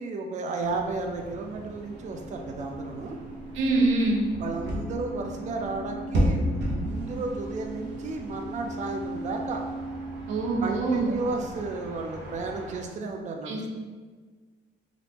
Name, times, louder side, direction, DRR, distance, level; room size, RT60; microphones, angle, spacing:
voice 1, 0.0-3.2 4.4-9.6 10.6-13.7, right 3 dB, 40° right, 3 dB, 0.4 m, -33 dB
sound 1, 0.6-12.8, equal, 60° right, 0.8 m, -35 dB
sound 2, 1.5-11.6, right 1 dB, 60° left, 0.8 m, -39 dB
voice 2, 3.5-4.3 10.3-11.2 13.5-13.6, right 2 dB, 90° right, 1 dB, 0.6 m, -24 dB
3.4 x 2.5 x 2.9 m, 1.5 s
cardioid pair, 90°, 20 cm